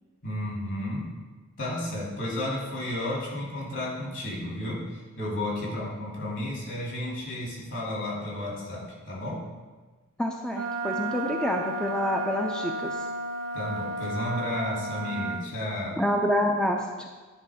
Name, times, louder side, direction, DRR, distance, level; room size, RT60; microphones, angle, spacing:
voice 1, 0.2-1.1 1.6-9.5 13.5-16.0, left 1 dB, 60° left, -4 dB, 2.6 m, -32 dB
voice 2, 10.2-13.1 16.0-17.1, left 1 dB, 5° left, 1 dB, 0.4 m, -27 dB
Wind instrument woodwind instrument, 10.5-15.5, right 2 dB, 75° right, 0.6 m, -33 dB
10.5 x 3.7 x 4.9 m, 1.3 s
head